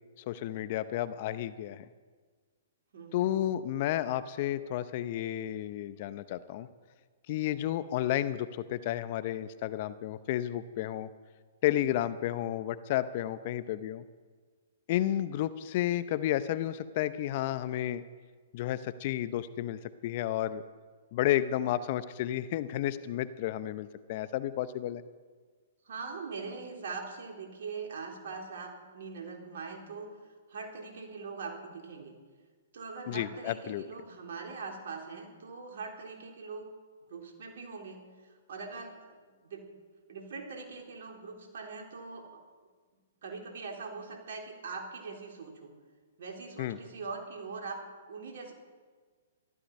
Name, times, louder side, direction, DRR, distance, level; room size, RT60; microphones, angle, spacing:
voice 1, 0.2-1.9 3.1-6.7 7.3-11.1 11.6-14.0 14.9-18.0 18.5-20.6 21.1-25.0 33.1-33.8 46.6-46.8, left 12 dB, 50° left, 15 dB, 0.7 m, -32 dB
voice 2, 2.9-3.5 25.9-30.1 30.5-32.2 32.7-36.7 37.1-38.1 38.5-39.0 39.3-39.6 40.1-42.4 43.2-45.7 46.2-47.8 48.1-48.5, right 4 dB, 65° right, 1 dB, 3.7 m, -42 dB
15.0 x 12.5 x 5.5 m, 1.5 s
hypercardioid pair, 125°, 0 cm